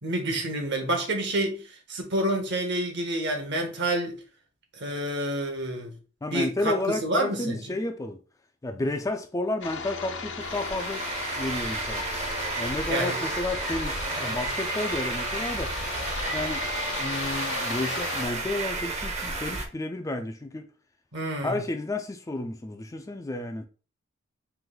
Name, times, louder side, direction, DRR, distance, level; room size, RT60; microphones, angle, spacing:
voice 1, 0.0-4.2 4.8-5.9 6.3-7.6 12.9-13.2 14.2-14.3 21.1-21.6, right 1 dB, 60° right, 1.1 m, -28 dB
voice 2, 6.2-8.2 8.6-11.0 11.4-12.1 12.6-15.7 16.3-16.6 17.0-20.7 21.4-23.7, left 2 dB, 15° left, 0.4 m, -31 dB
sound 1, 9.6-18.3, left 5 dB, 60° left, 0.8 m, -36 dB
sound 2, 10.4-19.7, right 3 dB, 35° right, 0.8 m, -32 dB
4.6 x 2.6 x 3.7 m
head